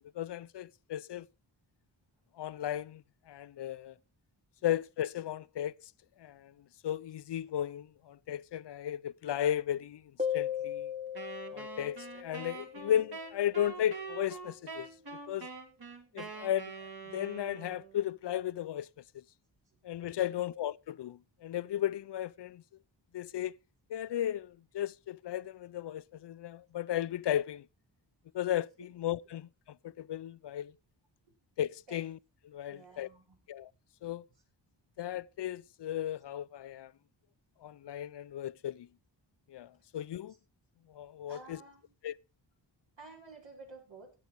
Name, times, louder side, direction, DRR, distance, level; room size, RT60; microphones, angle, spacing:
voice 1, 0.1-1.3 2.4-3.9 4.6-5.9 6.2-6.5 6.8-10.0 10.3-10.9 11.5-14.9 15.3-15.5 16.1-18.9 19.1-19.2 19.8-22.6 23.1-23.6 23.9-27.6 28.3-30.7 31.6-32.2 32.4-33.1 33.5-33.7 34.0-34.3 35.0-36.9 37.6-38.9 39.5-40.3 40.9-41.6 42.0-42.2, left 11 dB, 65° left, 0.5 m, -35 dB
sound 1, 10.2-13.5, left 8 dB, 15° right, 1.4 m, -37 dB
Wind instrument woodwind instrument, 11.1-18.0, right 4 dB, 55° right, 2.3 m, -45 dB
voice 2, 32.7-33.4 41.3-41.9 43.0-44.1, right 3 dB, 80° right, 6.1 m, -52 dB
16.5 x 7.8 x 4.6 m
wide cardioid pair, 75°, 45 cm